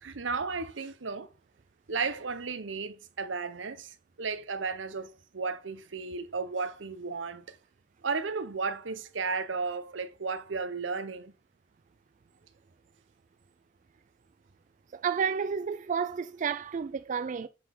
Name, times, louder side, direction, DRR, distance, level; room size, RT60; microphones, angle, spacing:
voice 1, 0.0-1.3 1.9-7.6 8.0-11.3, right 4 dB, 80° right, 0.9 m, -34 dB
voice 2, 14.9-17.5, right 6 dB, 40° right, 0.4 m, -31 dB
7.8 x 4.2 x 5.9 m
head